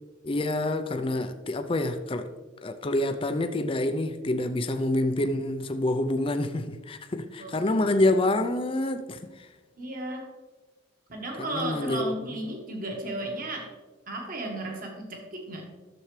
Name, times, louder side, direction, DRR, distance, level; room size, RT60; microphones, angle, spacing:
voice 1, 0.2-2.3 2.6-9.5 11.4-12.4, left 1 dB, 25° left, 0.4 m, -27 dB
voice 2, 9.8-10.3 11.1-13.7 14.1-15.6, right 1 dB, 40° right, 1.6 m, -34 dB
12.0 x 7.0 x 3.2 m
head